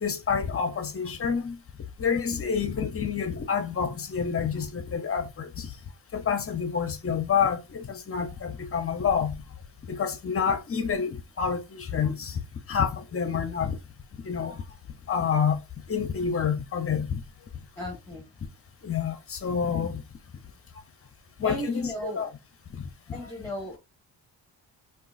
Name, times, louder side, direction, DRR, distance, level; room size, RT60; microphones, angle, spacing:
voice 1, 0.0-1.6 2.0-5.7 6.1-9.4 9.9-12.4 12.7-13.7 14.2-14.6 15.1-15.6 15.9-17.2 18.8-20.0 21.4-22.3 22.8-22.9, left 6 dB, 30° left, 0.7 m, -28 dB
voice 2, 17.8-18.3 21.4-22.3 23.1-23.8, equal, 5° left, 1.2 m, -36 dB
3.7 x 2.4 x 2.4 m
cardioid pair, 95°, 42 cm